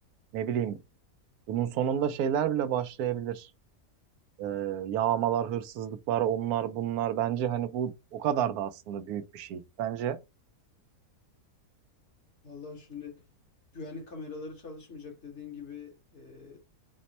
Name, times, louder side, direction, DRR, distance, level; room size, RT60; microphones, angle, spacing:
voice 1, 0.3-0.8 1.5-3.5 4.4-10.2, right 10 dB, 80° right, 1.1 m, -30 dB
voice 2, 12.4-13.2 13.7-16.6, left 4 dB, 50° left, 1.6 m, -43 dB
4.2 x 2.1 x 4.1 m
omnidirectional pair, 1.6 m